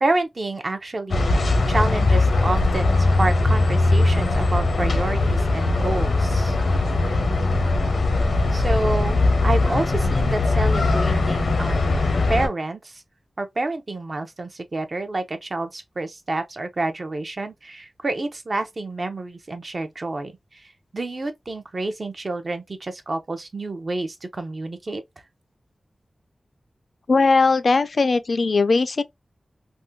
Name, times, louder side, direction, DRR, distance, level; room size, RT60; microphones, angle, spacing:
voice 1, 0.0-6.6 8.5-11.9 12.3-13.0 13.4-25.0, right 2 dB, 45° right, 0.6 m, -28 dB
sound 1, 1.1-12.5, left 2 dB, 90° left, 0.7 m, -20 dB
voice 2, 27.1-29.0, left 4 dB, 65° left, 0.3 m, -19 dB
3.5 x 2.2 x 2.6 m
wide cardioid pair, 105°, 0 cm